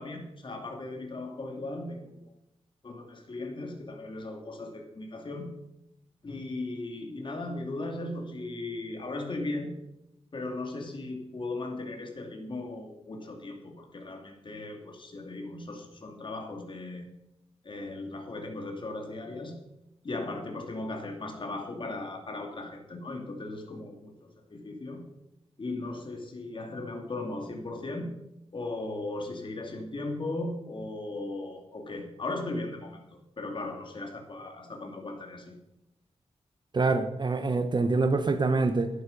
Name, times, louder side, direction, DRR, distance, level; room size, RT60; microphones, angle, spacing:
voice 1, 0.0-2.1 2.8-5.5 6.2-9.7 10.3-17.1 17.6-19.6 20.0-25.0 25.6-28.1 28.5-35.6, left 2 dB, 45° left, 3 dB, 2.5 m, -37 dB
voice 2, 36.7-38.9, right 3 dB, 40° right, 9 dB, 0.9 m, -25 dB
12.0 x 11.0 x 5.3 m, 0.87 s
wide cardioid pair, 105°, 11 cm